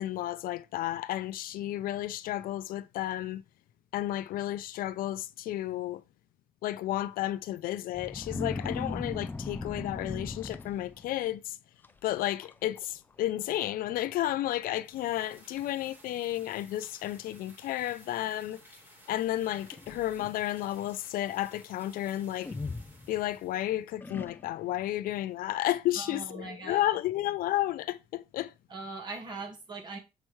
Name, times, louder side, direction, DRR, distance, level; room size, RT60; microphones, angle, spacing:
voice 1, 0.0-3.4 3.9-6.0 6.6-11.6 12.0-18.6 19.1-22.5 23.1-28.5, left 14 dB, 75° left, 0.4 m, -32 dB
sound 1, 7.9-11.2 11.8-12.1 12.4-12.8 13.1-13.2 14.0-14.1 14.6-14.7 15.2-15.7 16.5-16.6 19.4-20.4 22.4-23.5 24.0-24.7, left 3 dB, 15° left, 0.4 m, -38 dB
sound 2, 14.8-23.8, right 1 dB, 15° right, 2.4 m, -57 dB
voice 2, 25.9-26.9 28.7-30.0, right 3 dB, 30° right, 1.5 m, -40 dB
7.6 x 4.5 x 3.1 m
cardioid pair, 170°, 15 cm